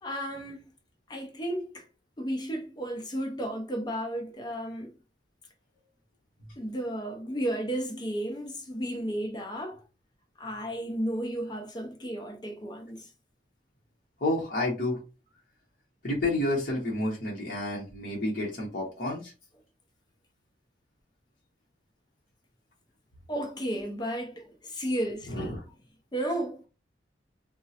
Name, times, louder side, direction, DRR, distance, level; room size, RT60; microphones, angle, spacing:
voice 1, 0.0-0.6 1.1-1.9 2.2-4.9 6.6-9.8 10.4-13.1 23.3-25.6 26.1-26.7, right 1 dB, 20° left, 0.4 m, -33 dB
voice 2, 14.2-15.0 16.0-19.3 25.3-25.6, left 1 dB, 50° left, 0.9 m, -30 dB
3.5 x 2.0 x 2.7 m
head